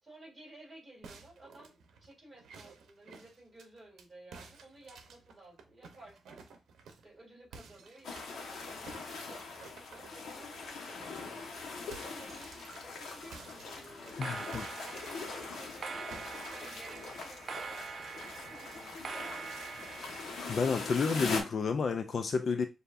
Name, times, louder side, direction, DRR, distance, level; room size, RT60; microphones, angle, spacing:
voice 1, 0.0-6.4 6.9-9.4 9.9-17.8 18.3-19.6, right 1 dB, 15° right, 2.7 m, -55 dB
sound 1, 1.0-4.1 4.3-7.1 7.5-8.5 8.9-10.6 11.0-11.2 11.5-15.7 16.1-17.3, right 5 dB, 85° right, 0.7 m, -53 dB
sound 2, 8.0-21.4, left 4 dB, 75° left, 1.1 m, -42 dB
sound 3, 11.6-12.5 12.7-13.1 14.0-20.8, right 5 dB, 45° right, 0.5 m, -44 dB
voice 2, 14.2-14.6 20.5-22.7, left 5 dB, 45° left, 0.3 m, -30 dB
6.7 x 2.7 x 2.5 m
wide cardioid pair, 165°, 0 cm